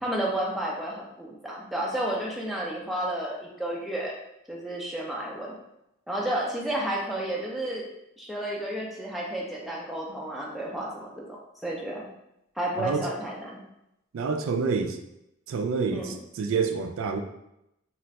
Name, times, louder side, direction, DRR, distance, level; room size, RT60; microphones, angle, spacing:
voice 1, 0.0-4.2 4.5-5.6 6.1-7.9 8.2-12.1 12.6-13.6 15.9-16.2, right 1 dB, ahead, -3 dB, 0.4 m, -31 dB
voice 2, 14.1-15.0 15.5-17.2, right 5 dB, 75° right, 6 dB, 0.3 m, -28 dB
2.4 x 2.2 x 4.0 m, 0.84 s
head